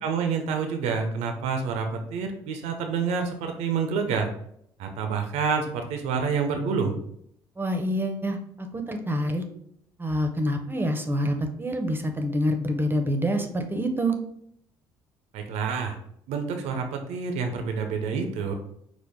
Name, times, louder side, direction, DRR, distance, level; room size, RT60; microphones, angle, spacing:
voice 1, 0.0-4.3 4.8-6.9 15.3-16.0 16.3-18.5, right 5 dB, 65° right, 5 dB, 0.5 m, -28 dB
voice 2, 7.6-9.4 10.0-14.2, equal, 20° right, 5 dB, 0.6 m, -27 dB
4.5 x 2.1 x 3.4 m, 0.71 s
hypercardioid pair, 50°, 12 cm